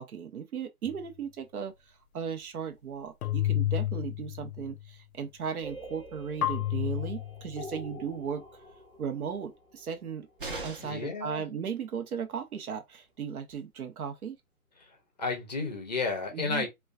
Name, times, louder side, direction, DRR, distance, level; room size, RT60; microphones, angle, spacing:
voice 1, 0.0-8.4 9.0-10.3 10.6-14.4 16.3-16.7, right 7 dB, 80° right, 0.7 m, -36 dB
sound 1, 0.9-1.0 3.2-4.9 6.4-7.9, left 14 dB, 85° left, 0.5 m, -31 dB
sound 2, 5.6-11.4, equal, 5° right, 0.8 m, -48 dB
sound 3, 10.4-11.1 13.1-13.2 13.5-13.6, right 2 dB, 40° right, 0.6 m, -39 dB
voice 2, 10.6-11.5 14.8-16.7, left 4 dB, 30° left, 0.5 m, -33 dB
2.3 x 2.2 x 2.3 m
hypercardioid pair, 155°, 43 cm